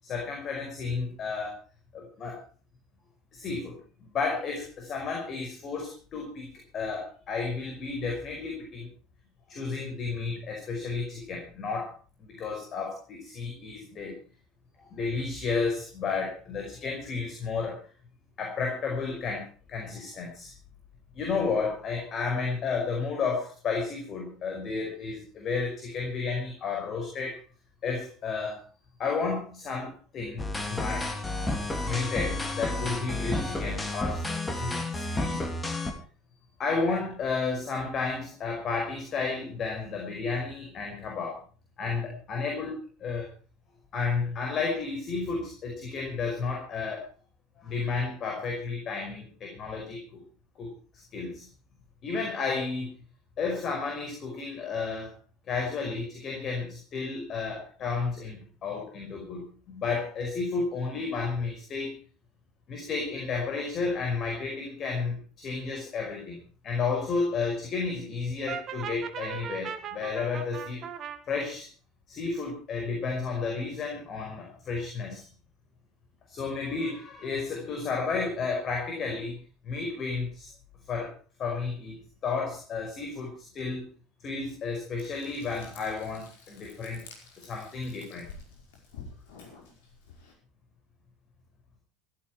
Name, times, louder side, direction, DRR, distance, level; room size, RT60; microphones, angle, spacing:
voice 1, 0.0-1.6 1.9-2.4 3.3-3.8 4.1-6.5 6.7-8.9 9.5-11.9 12.2-14.1 14.8-17.8 18.4-20.5 21.1-27.4 27.8-28.6 29.0-31.1 31.8-35.4 36.6-41.4 41.8-43.3 43.9-47.0 47.6-50.2 50.5-50.7 51.1-51.4 52.0-52.9 53.4-55.1 55.5-62.0 62.7-66.4 66.6-70.9 71.3-71.7 72.1-75.3 76.3-80.5 80.9-81.1 81.4-83.9 84.2-87.0 87.4-88.3, left 4 dB, 35° left, 1 dB, 5.2 m, -32 dB
sound 1, 30.4-35.9, left 2 dB, 15° left, 3.2 m, -31 dB
Brass instrument, 68.5-71.2, right 8 dB, 40° right, 1.6 m, -38 dB
Frying (food), 85.0-90.3, left 4 dB, 60° left, 5.2 m, -50 dB
16.0 x 14.5 x 4.8 m, 0.39 s
figure-of-eight pair, 70°, 0 cm